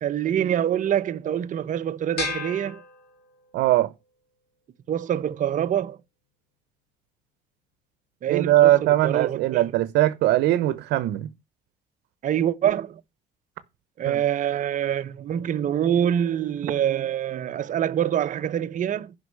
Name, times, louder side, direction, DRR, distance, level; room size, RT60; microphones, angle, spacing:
voice 1, 0.0-2.8 4.9-6.0 8.2-9.6 12.2-13.0 14.0-19.1, right 10 dB, 50° right, 0.8 m, -25 dB
sound 1, 2.2-3.7, left 4 dB, 70° left, 4.0 m, -34 dB
voice 2, 3.5-3.9 8.3-11.3 14.1-14.2, right 15 dB, 80° right, 0.8 m, -20 dB
11.5 x 5.4 x 6.3 m
cardioid pair, 110°, 17 cm